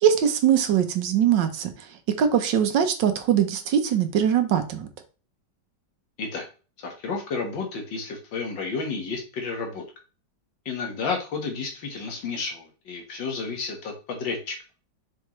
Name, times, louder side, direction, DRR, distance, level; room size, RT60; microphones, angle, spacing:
voice 1, 0.0-1.9 2.2-4.9, right 9 dB, 75° right, 8 dB, 1.6 m, -22 dB
voice 2, 6.8-9.8 10.7-14.6, left 4 dB, 80° left, 2 dB, 2.2 m, -31 dB
6.6 x 4.5 x 3.1 m, 0.35 s
omnidirectional pair, 2.0 m